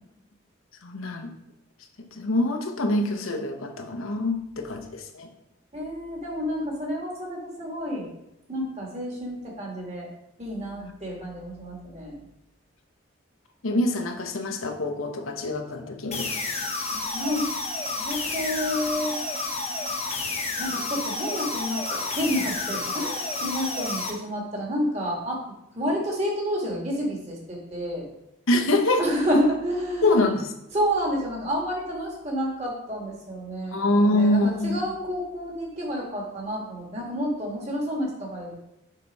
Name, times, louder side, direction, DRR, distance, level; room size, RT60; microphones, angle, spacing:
voice 1, 0.8-1.3 2.1-5.3 10.8-10.9 13.6-16.3 28.5-29.0 30.0-30.5 33.7-34.8, left 1 dB, 85° left, 4 dB, 0.9 m, -25 dB
voice 2, 5.7-8.1 8.5-10.1 10.4-12.2 16.9-17.5 17.8-19.2 19.6-19.9 20.6-25.4 25.7-28.1 29.0-30.2 30.7-38.6, equal, 30° right, -2 dB, 1.8 m, -29 dB
sound 1, 16.1-24.1, left 3 dB, 30° left, 0.9 m, -30 dB
6.7 x 4.0 x 5.3 m, 0.85 s
head